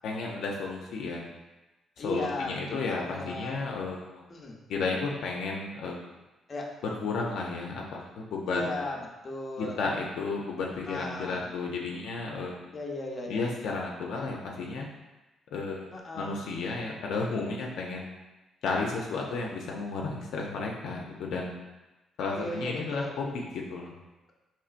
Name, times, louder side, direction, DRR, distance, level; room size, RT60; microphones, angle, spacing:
voice 1, 0.0-1.3 2.0-4.2 4.7-6.0 6.8-8.8 9.6-12.6 13.3-14.9 15.5-18.1 18.6-21.5 22.2-23.9, left 3 dB, 80° left, -1 dB, 0.5 m, -33 dB
voice 2, 2.0-3.5 4.3-4.6 6.5-6.7 8.5-9.8 10.9-11.5 12.7-13.4 15.9-16.4 22.4-23.1, left 2 dB, 35° left, -1 dB, 0.7 m, -36 dB
4.4 x 3.0 x 2.5 m, 1.1 s
cardioid pair, 90°, 0 cm